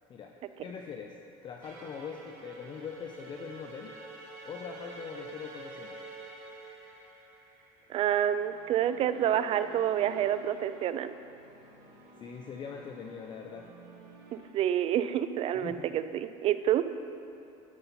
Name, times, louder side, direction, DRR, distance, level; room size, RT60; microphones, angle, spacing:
voice 1, 0.6-3.9 4.4-6.0 12.2-13.7 15.6-15.9, left 6 dB, 35° left, 2 dB, 0.5 m, -42 dB
sound 1, 1.6-14.4, right 3 dB, 65° right, 1.6 m, -49 dB
voice 2, 7.9-11.1 14.3-17.0, right 10 dB, 45° right, 12 dB, 0.4 m, -28 dB
12.5 x 5.4 x 4.2 m, 2.8 s
cardioid pair, 125°, 14 cm